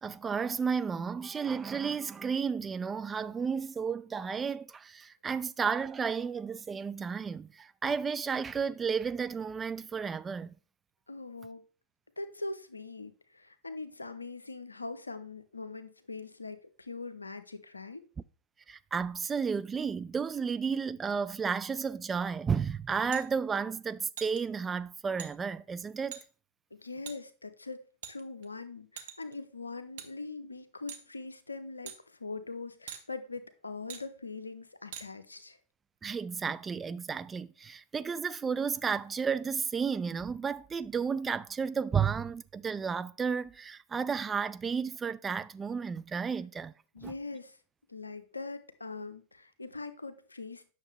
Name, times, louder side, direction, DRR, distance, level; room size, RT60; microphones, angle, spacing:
voice 1, 0.0-10.5 18.7-26.2 36.0-46.7 47.0-47.1, right 6 dB, 20° right, 0.3 m, -32 dB
voice 2, 11.1-11.6 12.2-18.0 26.7-35.6 46.9-47.6 47.9-50.7, left 3 dB, 80° left, 0.7 m, -42 dB
sound 1, 23.1-23.3 24.2-24.4 25.2-25.3 26.1-26.2 27.1-27.2 28.0-28.5 29.0-29.3 30.0-30.1 30.9-31.1 31.9-32.0 32.9-33.0 33.9-34.0 34.9-35.1, right 9 dB, 55° right, 1.0 m, -43 dB
9.0 x 6.4 x 3.4 m
figure-of-eight pair, 90°, 0 cm